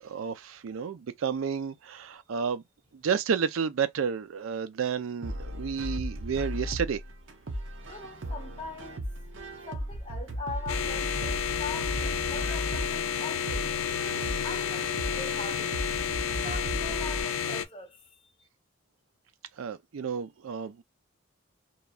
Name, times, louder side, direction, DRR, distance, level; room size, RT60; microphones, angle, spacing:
voice 1, 0.0-2.6 2.9-7.0 19.6-20.8, right 6 dB, 85° right, 0.4 m, -31 dB
sound 1, 5.2-17.2, equal, 65° right, 0.7 m, -36 dB
voice 2, 7.9-9.1 9.7-14.1 14.4-15.7 16.3-18.3, left 3 dB, 25° left, 1.0 m, -42 dB
sound 2, 10.7-17.6, left 8 dB, 90° left, 0.4 m, -31 dB
3.0 x 2.2 x 2.3 m
head